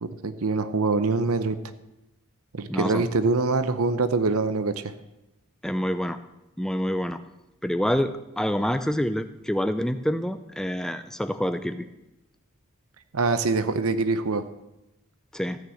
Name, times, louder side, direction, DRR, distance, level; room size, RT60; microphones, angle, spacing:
voice 1, 0.0-1.6 2.5-4.9 13.1-14.4, right 3 dB, 85° right, 11 dB, 0.8 m, -24 dB
voice 2, 2.7-3.0 5.6-6.2 6.6-7.2 7.6-11.8 15.3-15.6, equal, 5° left, 10 dB, 0.5 m, -27 dB
14.5 x 6.6 x 7.8 m, 0.95 s
head